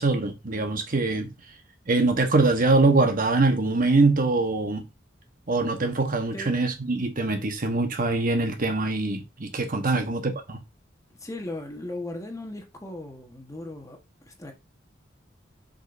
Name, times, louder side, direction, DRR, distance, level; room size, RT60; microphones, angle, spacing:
voice 1, 0.0-1.3 1.9-4.9 5.5-10.6, right 3 dB, 45° right, 1.1 m, -23 dB
voice 2, 11.2-14.0 14.3-14.5, left 1 dB, 15° left, 1.2 m, -37 dB
7.3 x 5.3 x 2.6 m
head